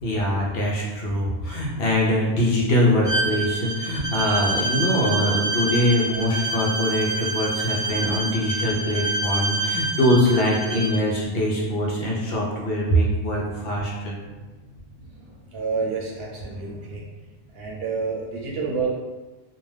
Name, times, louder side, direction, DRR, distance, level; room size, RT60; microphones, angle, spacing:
voice 1, 0.0-14.1, equal, 65° left, -3 dB, 0.8 m, -23 dB
Bowed string instrument, 3.0-11.0, right 2 dB, 50° right, 0.4 m, -27 dB
voice 2, 15.5-17.0 17.5-18.9, right 4 dB, 65° right, -3 dB, 0.8 m, -28 dB
2.4 x 2.2 x 3.2 m, 1.2 s
omnidirectional pair, 1.2 m